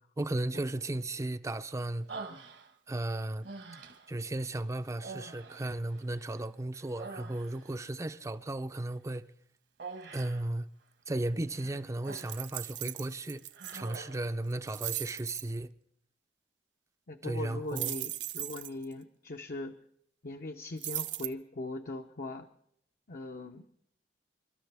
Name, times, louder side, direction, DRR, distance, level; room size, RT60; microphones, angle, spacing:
voice 1, 0.2-2.1 2.9-3.5 4.1-9.2 10.1-10.7 11.1-13.4 13.7-15.7 17.2-17.9, right 1 dB, 20° right, 0.5 m, -35 dB
Human voice, 2.1-3.0 3.4-4.2 5.0-6.4 6.7-7.8 9.8-10.5 11.5-12.5 12.9-13.1 13.5-14.3, right 4 dB, 70° right, 1.4 m, -46 dB
sound 1, 12.1-14.0 14.5-15.4 17.7-18.8 20.8-21.3, right 14 dB, 90° right, 0.7 m, -38 dB
voice 2, 17.1-19.8 20.2-22.5 23.1-23.7, left 2 dB, 55° left, 0.8 m, -40 dB
28.5 x 12.5 x 3.5 m
head